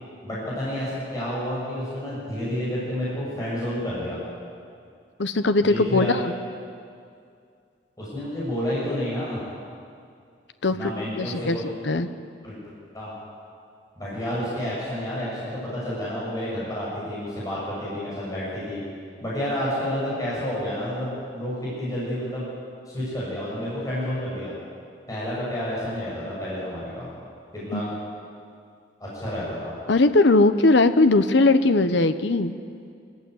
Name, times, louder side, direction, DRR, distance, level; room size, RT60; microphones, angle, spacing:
voice 1, 0.2-4.2 5.6-6.1 8.0-9.4 10.7-11.6 12.4-13.1 14.0-18.8 19.2-22.5 22.9-24.5 25.1-27.1 27.5-27.9 29.0-29.7, equal, 20° left, -8 dB, 7.4 m, -30 dB
voice 2, 5.2-6.3 10.6-11.6 11.8-12.1 27.7-27.8 29.9-32.5, left 2 dB, 70° left, 10 dB, 0.9 m, -19 dB
24.5 x 15.0 x 9.6 m, 2.3 s
head